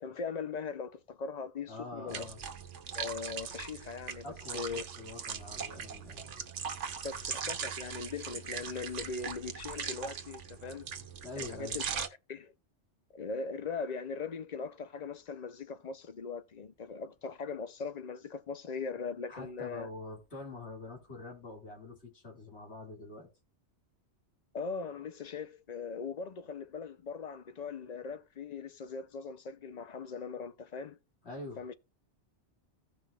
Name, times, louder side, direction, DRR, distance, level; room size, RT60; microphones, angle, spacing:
voice 1, 0.0-2.3 2.9-4.2 4.5-4.8 7.0-10.9 11.4-11.8 12.3-12.5 13.1-19.9 24.5-31.0 31.6-31.7, left 5 dB, 45° left, 0.6 m, -40 dB
voice 2, 1.7-2.4 4.2-6.4 11.2-11.8 19.3-23.3 31.2-31.8, left 2 dB, 65° left, 2.6 m, -45 dB
sound 1, 2.1-12.1, right 7 dB, 85° right, 1.3 m, -40 dB
16.0 x 5.7 x 2.3 m
omnidirectional pair, 1.2 m